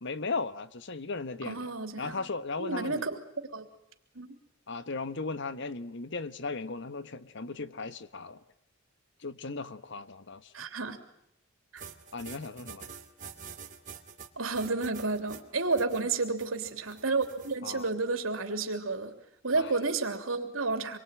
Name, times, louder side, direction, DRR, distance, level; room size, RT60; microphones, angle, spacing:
voice 1, 0.0-1.7 2.0-3.1 4.7-8.4 9.2-10.5 12.1-12.9 17.6-17.9 19.6-19.7, left 3 dB, 65° left, 13 dB, 1.2 m, -37 dB
voice 2, 1.4-2.2 2.6-3.1 3.5-3.7 4.1-4.3 10.5-11.0 11.7-11.8 14.4-19.1 19.4-21.0, right 3 dB, 85° right, 6 dB, 3.2 m, -31 dB
sound 1, 11.8-17.8, right 6 dB, 40° right, 2.6 m, -47 dB
26.5 x 23.5 x 9.1 m, 0.74 s
head